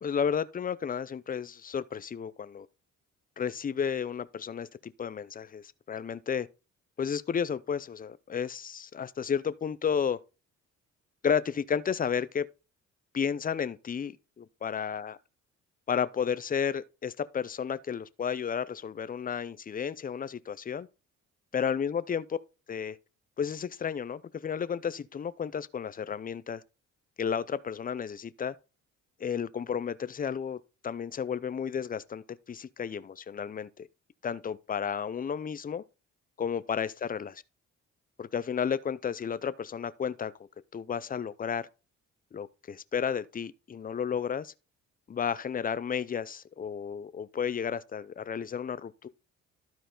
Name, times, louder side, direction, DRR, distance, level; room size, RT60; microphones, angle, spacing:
voice 1, 0.0-2.7 3.4-6.5 7.0-10.2 11.2-12.5 13.1-15.2 15.9-20.9 21.5-22.4 22.7-23.0 23.4-26.6 27.2-28.5 29.2-33.9 34.2-35.8 36.4-37.4 38.2-40.3 40.7-41.7 42.3-44.5 45.1-49.1, left 7 dB, 30° left, 0.5 m, -32 dB
12.5 x 4.6 x 3.9 m
cardioid pair, 90°, 30 cm